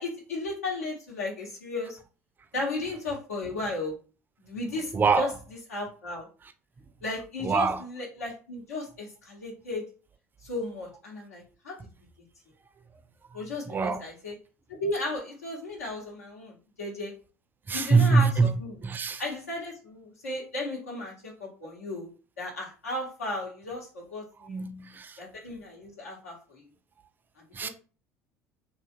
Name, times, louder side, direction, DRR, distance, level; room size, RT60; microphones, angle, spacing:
voice 1, 0.0-2.0 2.5-3.9 4.4-5.3 5.7-6.3 7.0-9.9 10.4-11.7 13.3-14.3 14.7-17.1 17.7-18.7 19.2-22.1 22.4-24.6 25.2-26.6 27.4-27.7, left 2 dB, 80° left, 1.0 m, -35 dB
voice 2, 4.9-5.3 7.4-7.8 13.7-14.0 17.7-18.5 18.8-19.2 24.4-25.2 27.5-27.7, right 4 dB, 25° right, 0.4 m, -24 dB
2.7 x 2.4 x 2.6 m
figure-of-eight pair, 65°, 8 cm